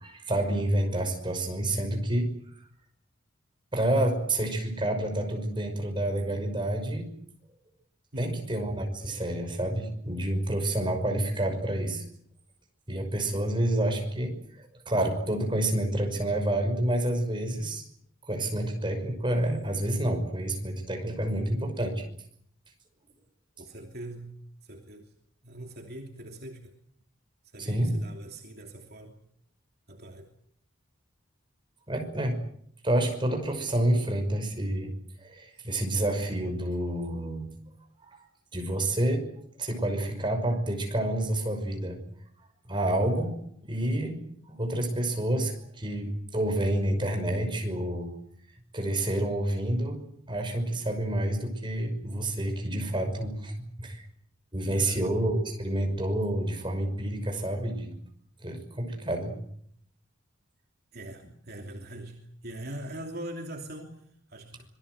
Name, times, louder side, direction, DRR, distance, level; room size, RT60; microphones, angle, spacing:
voice 1, 0.0-2.3 3.7-7.1 8.2-12.0 12.9-17.9 18.3-22.0 27.6-28.0 31.9-32.4 32.8-34.9 35.2-37.5 38.0-38.2 38.5-39.3 39.6-42.0 42.7-43.4 43.6-44.2 44.5-48.1 48.7-50.0 50.3-54.1 54.5-57.9 58.4-59.3, right 1 dB, 25° right, 4 dB, 5.8 m, -28 dB
voice 2, 8.1-8.5 23.6-24.4 24.6-25.1 25.4-26.7 27.5-29.2 29.9-30.3 54.7-55.0 60.9-64.7, right 1 dB, 50° right, 2 dB, 2.9 m, -42 dB
26.0 x 20.5 x 8.0 m, 0.67 s
head